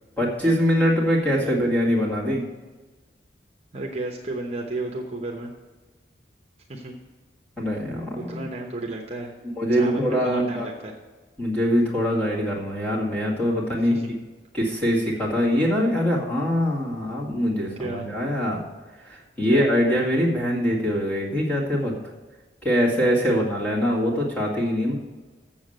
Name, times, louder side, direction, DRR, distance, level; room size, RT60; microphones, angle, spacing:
voice 1, 0.2-2.4 7.6-8.5 9.6-10.7 11.4-14.0 14.5-18.6 19.0-21.9 22.6-24.9, equal, 5° left, -5 dB, 2.0 m, -23 dB
voice 2, 3.7-5.5 6.7-6.9 8.1-9.3 9.7-10.9 13.9-14.0 17.8-18.1 19.5-19.7 23.3-23.5, right 2 dB, 35° right, 1 dB, 0.9 m, -32 dB
7.3 x 7.2 x 7.8 m, 1.3 s
head